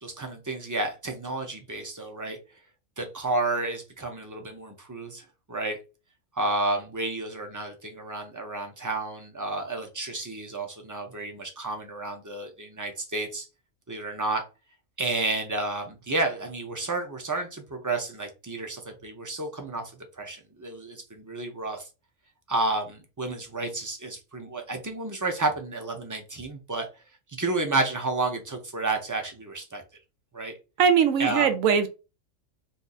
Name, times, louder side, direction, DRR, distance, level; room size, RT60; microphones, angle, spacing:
voice 1, 0.0-2.4 3.0-5.8 6.3-13.5 13.9-14.4 15.0-19.9 20.2-21.9 22.5-26.9 27.4-29.8 30.3-30.5 31.2-31.5, right 2 dB, 20° right, 0.5 m, -31 dB
voice 2, 30.8-31.9, right 7 dB, 85° right, 1.0 m, -21 dB
2.7 x 2.6 x 3.9 m
omnidirectional pair, 1.4 m